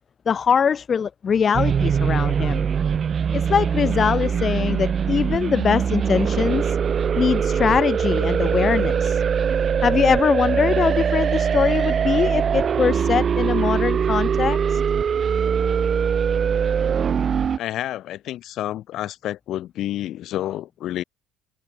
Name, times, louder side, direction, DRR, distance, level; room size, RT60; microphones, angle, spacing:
voice 1, 0.3-2.6 3.3-6.8 7.2-9.2 9.8-14.8, left 7 dB, 35° left, 0.7 m, -22 dB
sound 1, 1.5-17.6, right 7 dB, 40° right, 0.8 m, -22 dB
voice 2, 17.6-21.0, left 13 dB, 60° left, 3.9 m, -29 dB
cardioid pair, 115°, 0 cm